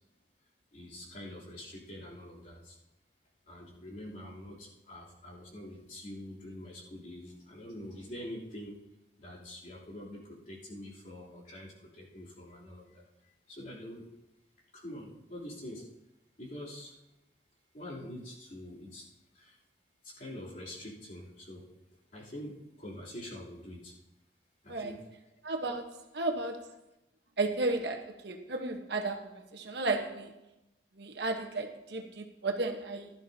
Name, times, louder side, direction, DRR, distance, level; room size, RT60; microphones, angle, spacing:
voice 1, 0.7-2.8 3.5-8.8 9.2-14.1 14.7-15.9 16.4-16.9 17.7-19.1 19.3-19.6 20.0-21.7 22.1-23.9 24.6-25.1, left 1 dB, 45° left, -5 dB, 3.4 m, -45 dB
voice 2, 25.4-26.6 27.4-30.3 31.0-33.1, right 2 dB, 70° right, 3 dB, 1.2 m, -34 dB
15.5 x 12.5 x 2.8 m, 0.95 s
head